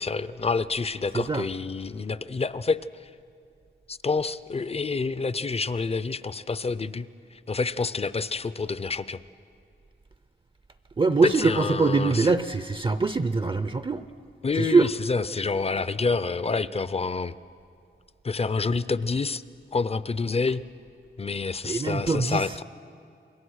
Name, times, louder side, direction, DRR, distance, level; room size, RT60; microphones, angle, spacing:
voice 1, 0.0-3.1 3.9-9.2 11.2-12.3 14.4-17.3 18.2-19.4 19.7-20.6 21.2-22.6, left 4 dB, 30° left, 16 dB, 0.5 m, -28 dB
voice 2, 11.0-14.0 14.6-14.9 21.6-22.4, right 4 dB, 25° right, 11 dB, 0.5 m, -23 dB
28.5 x 22.0 x 6.4 m, 2.4 s
wide cardioid pair, 150°, 20 cm